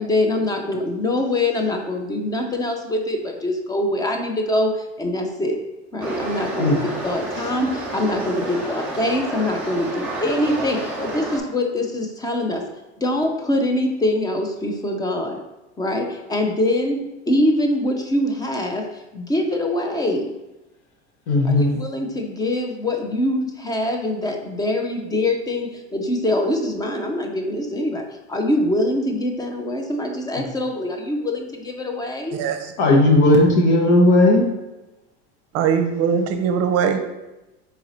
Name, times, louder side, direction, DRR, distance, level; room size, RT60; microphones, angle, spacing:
voice 1, 0.0-5.6 5.9-12.6 13.0-15.4 15.8-20.3 21.4-28.0 28.3-32.4, left 1 dB, 10° left, 4 dB, 0.4 m, -24 dB
sound 1, 6.0-11.4, right 1 dB, 5° right, 0.9 m, -30 dB
voice 2, 21.3-21.8 32.8-34.4, left 1 dB, 75° left, 0 dB, 1.2 m, -15 dB
voice 3, 32.3-32.7 35.5-37.0, right 7 dB, 45° right, 7 dB, 0.6 m, -21 dB
4.0 x 2.9 x 3.9 m, 1.0 s
supercardioid pair, 115°, 34 cm